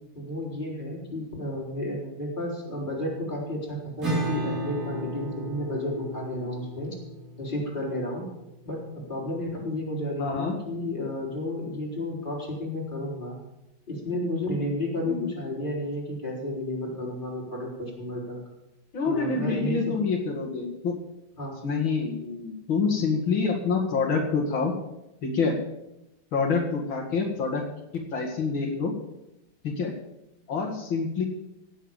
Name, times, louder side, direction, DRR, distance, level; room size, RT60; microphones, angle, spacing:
voice 1, 0.1-6.9 7.4-8.3 8.6-13.4 13.9-18.4 19.0-20.0 21.4-21.6, left 1 dB, 25° left, -3 dB, 4.1 m, -32 dB
Acoustic guitar / Strum, 4.0-9.5, right 1 dB, 45° right, 5.0 m, -35 dB
voice 2, 10.2-10.5 15.0-15.2 18.9-21.0 21.6-24.7 25.2-25.6 26.3-27.6 27.9-28.9 29.6-29.9 30.5-31.3, left 4 dB, 90° left, 0 dB, 2.9 m, -27 dB
17.0 x 7.4 x 7.3 m, 0.90 s
omnidirectional pair, 2.1 m